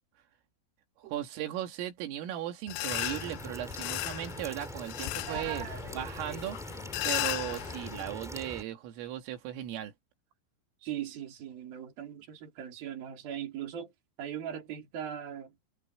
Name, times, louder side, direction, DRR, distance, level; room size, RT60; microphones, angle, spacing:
voice 1, 1.0-5.7 5.9-6.6 7.0-9.9, right 12 dB, 90° right, 4.7 m, -37 dB
sound 1, 2.7-8.0, left 22 dB, 85° left, 2.6 m, -36 dB
sound 2, 2.9-8.6, equal, ahead, 0.8 m, -43 dB
voice 2, 5.3-6.4 10.8-13.9 14.2-15.5, right 10 dB, 50° right, 4.8 m, -40 dB
omnidirectional pair, 5.7 m